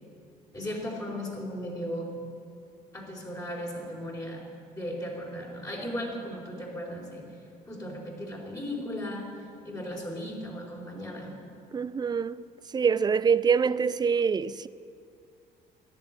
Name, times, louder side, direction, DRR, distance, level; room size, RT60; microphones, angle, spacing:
voice 1, 0.5-2.1 2.9-4.4 4.7-7.3 7.7-9.3 9.6-11.3, equal, 20° left, 4.2 m, -36 dB
voice 2, 11.7-12.5 12.7-14.7, right 6 dB, 25° right, 0.4 m, -25 dB
14.0 x 11.0 x 8.7 m
cardioid pair, 110°, 17 cm